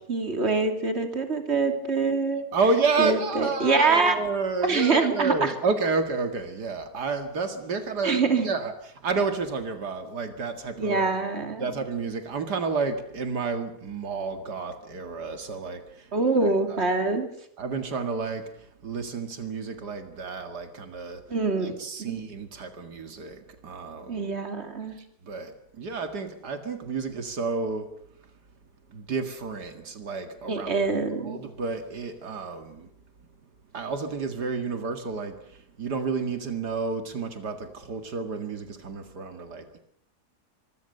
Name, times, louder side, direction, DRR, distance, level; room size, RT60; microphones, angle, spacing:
voice 1, 0.1-2.4 3.0-4.2 4.6-5.5 8.0-8.5 10.8-11.7 16.1-17.3 21.3-22.2 24.1-25.0 30.5-31.4, right 4 dB, 40° right, 5 dB, 3.2 m, -25 dB
voice 2, 2.5-11.1 11.6-16.1 16.4-16.8 17.6-21.2 21.6-24.3 25.0-27.9 28.2-28.3 28.9-30.9 31.2-32.9 33.7-39.8, right 4 dB, 90° right, 7 dB, 2.6 m, -30 dB
25.0 x 22.5 x 6.7 m, 0.67 s
omnidirectional pair, 1.7 m